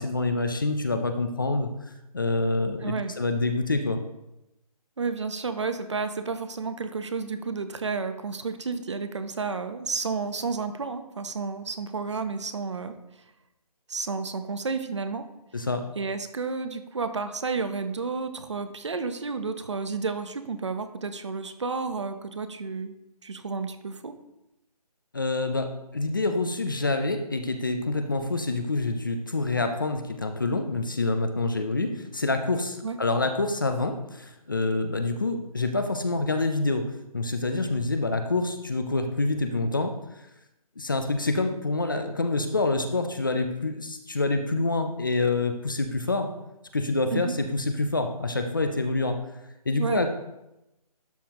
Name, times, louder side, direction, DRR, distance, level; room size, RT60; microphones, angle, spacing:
voice 1, 0.0-1.7 2.1-4.0 15.5-15.9 25.1-39.9 40.8-46.3 46.7-49.2 49.7-50.1, left 2 dB, 30° left, 7 dB, 0.5 m, -27 dB
voice 2, 2.8-3.1 5.0-13.0 13.9-15.3 16.0-22.9 23.2-24.1 32.8-33.0 47.1-47.3 49.8-50.0, right 4 dB, 45° right, 10 dB, 0.7 m, -31 dB
11.5 x 5.5 x 2.9 m, 0.91 s
hypercardioid pair, 175°, 20 cm